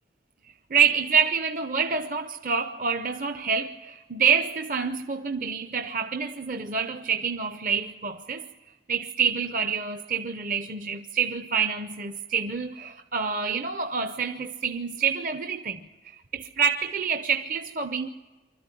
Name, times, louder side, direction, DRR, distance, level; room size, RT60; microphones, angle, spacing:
voice 1, 0.7-8.4 8.9-15.8 16.3-18.1, right 6 dB, 50° right, 0.7 m, -27 dB
25.0 x 14.0 x 9.9 m
head